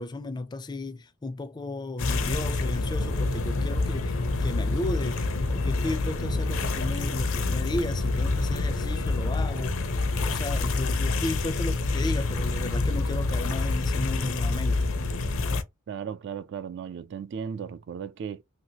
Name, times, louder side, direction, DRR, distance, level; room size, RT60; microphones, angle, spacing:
voice 1, 0.0-14.9, left 2 dB, 20° left, 0.4 m, -34 dB
sound 1, 2.0-15.6, left 3 dB, 70° left, 0.7 m, -27 dB
voice 2, 15.9-18.4, right 7 dB, 55° right, 0.3 m, -36 dB
2.9 x 2.8 x 2.8 m
head